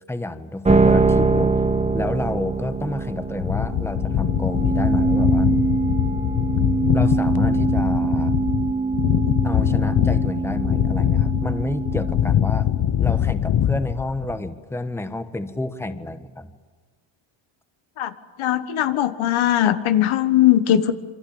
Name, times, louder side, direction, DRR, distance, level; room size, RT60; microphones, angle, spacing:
voice 1, 0.1-1.5 1.9-5.5 6.9-8.3 9.4-12.7 13.0-16.6, left 1 dB, 5° left, 10 dB, 1.3 m, -30 dB
sound 1, 0.6-13.0, right 4 dB, 15° right, 1.2 m, -23 dB
sound 2, 3.4-14.5, left 10 dB, 50° left, 0.9 m, -22 dB
voice 2, 18.4-20.9, left 12 dB, 85° left, 10 dB, 1.7 m, -19 dB
27.0 x 25.0 x 8.8 m, 1.4 s
cardioid pair, 130°, 47 cm